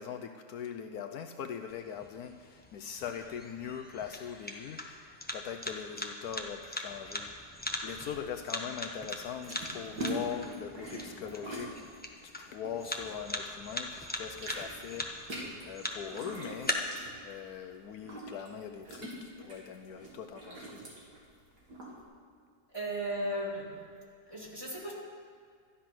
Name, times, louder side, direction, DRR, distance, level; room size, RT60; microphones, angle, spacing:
voice 1, 0.0-7.5 7.8-11.9 12.2-15.1 15.6-16.8 17.2-20.9, left 8 dB, 70° left, 6 dB, 1.1 m, -41 dB
sound 1, 1.7-16.7, left 1 dB, 10° left, 0.8 m, -41 dB
sound 2, 9.1-13.6 13.9-22.0, right 1 dB, 75° right, 3.0 m, -43 dB
voice 2, 22.7-23.9 24.3-24.9, right 1 dB, 15° right, -4 dB, 2.5 m, -36 dB
13.0 x 10.0 x 6.0 m, 2.1 s
omnidirectional pair, 1.7 m